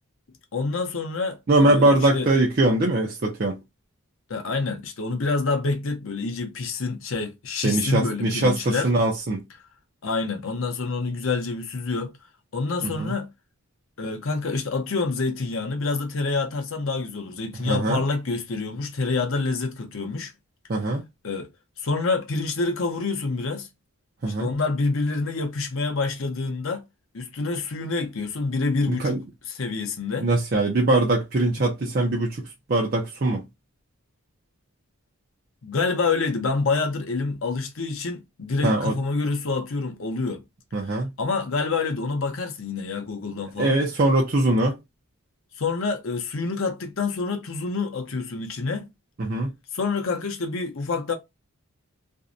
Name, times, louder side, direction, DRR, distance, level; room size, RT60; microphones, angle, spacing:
voice 1, 0.5-2.3 4.3-8.9 10.0-12.1 12.5-13.3 14.0-20.3 21.2-21.5 21.8-23.7 24.3-26.8 27.1-29.2 29.5-30.3 35.6-40.4 41.2-43.8 45.6-48.9 49.7-51.1, left 3 dB, 70° left, 0.6 m, -27 dB
voice 2, 1.5-3.6 7.6-9.4 12.8-13.1 17.6-18.0 20.7-21.0 24.2-24.5 28.9-29.2 30.2-33.4 38.6-39.0 40.7-41.1 43.6-44.8 49.2-49.5, right 2 dB, 45° right, 0.5 m, -22 dB
2.6 x 2.1 x 2.4 m
head